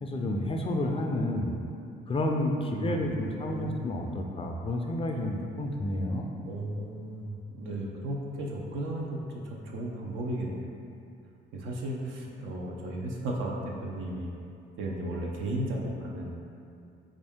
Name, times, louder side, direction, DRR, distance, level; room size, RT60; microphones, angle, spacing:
voice 1, 0.0-1.5 2.1-6.3, left 1 dB, 30° left, 2 dB, 0.3 m, -30 dB
voice 2, 2.6-3.9 6.5-10.6 11.5-14.3 14.8-16.3, right 1 dB, 80° right, -1 dB, 0.6 m, -35 dB
3.6 x 2.5 x 3.5 m, 2.5 s
cardioid pair, 90°, 20 cm